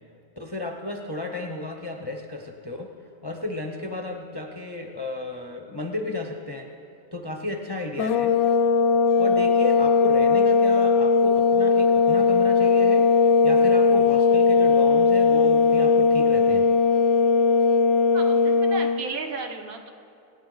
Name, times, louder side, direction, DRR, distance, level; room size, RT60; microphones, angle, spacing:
voice 1, 0.4-2.9 3.2-6.7 7.1-8.3 9.2-13.0 13.4-16.7, left 2 dB, 25° left, 2 dB, 0.6 m, -33 dB
sound 1, 8.0-19.0, left 5 dB, 80° left, 1.0 m, -19 dB
voice 2, 18.1-19.9, right 4 dB, 70° right, 4 dB, 1.4 m, -34 dB
24.5 x 9.4 x 3.9 m, 2.5 s
omnidirectional pair, 1.5 m